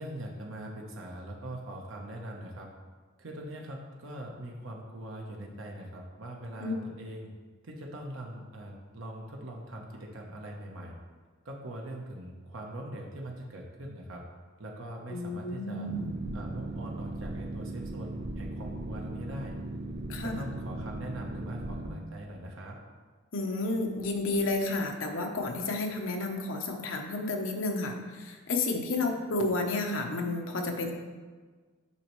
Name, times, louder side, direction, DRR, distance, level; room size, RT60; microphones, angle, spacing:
voice 1, 0.0-2.7 3.2-7.3 7.6-10.9 11.4-14.2 14.6-15.9 16.3-19.6 20.2-22.8, right 1 dB, 70° right, 0 dB, 0.9 m, -42 dB
voice 2, 15.1-16.2 20.1-20.4 23.3-30.9, left 2 dB, 70° left, 2 dB, 0.8 m, -31 dB
Boat Water vehicle, 15.9-21.9, right 2 dB, 30° right, 0.6 m, -37 dB
8.4 x 5.3 x 3.1 m, 1.4 s
head